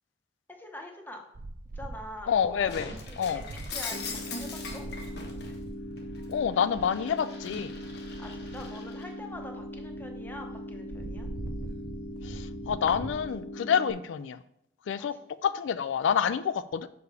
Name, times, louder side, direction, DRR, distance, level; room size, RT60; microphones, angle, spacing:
voice 1, 0.5-1.2 1.7-4.8 8.2-11.3 15.0-15.1, left 1 dB, 10° left, 3 dB, 0.9 m, -44 dB
sound 1, 1.3-13.4, right 2 dB, 50° right, 0.5 m, -43 dB
voice 2, 2.3-3.4 6.3-7.7 12.2-14.4 14.9-15.2 15.4-16.9, left 7 dB, 80° left, 14 dB, 0.3 m, -28 dB
Shatter, 2.7-5.5 6.0-9.1, left 4 dB, 55° left, 1.2 m, -41 dB
sound 2, 3.9-13.9, left 1 dB, 35° left, 0.9 m, -40 dB
6.7 x 4.9 x 4.7 m, 0.74 s
head